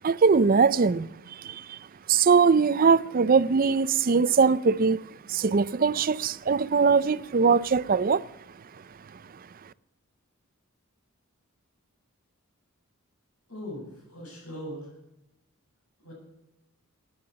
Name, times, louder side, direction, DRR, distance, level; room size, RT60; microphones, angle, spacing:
voice 1, 0.0-1.1 1.4-1.8 2.1-5.0 5.3-8.2, right 5 dB, 40° right, 0.4 m, -21 dB
voice 2, 13.5-14.9 16.0-16.1, equal, 75° left, 7.5 m, -39 dB
15.5 x 9.6 x 8.6 m
head